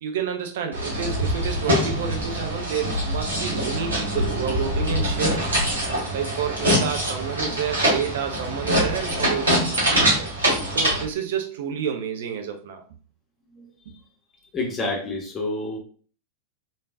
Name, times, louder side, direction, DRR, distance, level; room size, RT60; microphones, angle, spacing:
voice 1, 0.0-5.4 6.1-10.3 10.7-12.8 13.9-14.0, right 7 dB, 55° right, 5 dB, 0.5 m, -30 dB
sound 1, 0.7-11.0, equal, 70° right, 1.6 m, -24 dB
voice 2, 14.5-15.8, left 2 dB, 20° left, 0 dB, 1.2 m, -28 dB
3.8 x 3.6 x 2.5 m, 0.42 s
figure-of-eight pair, 90°, 0 cm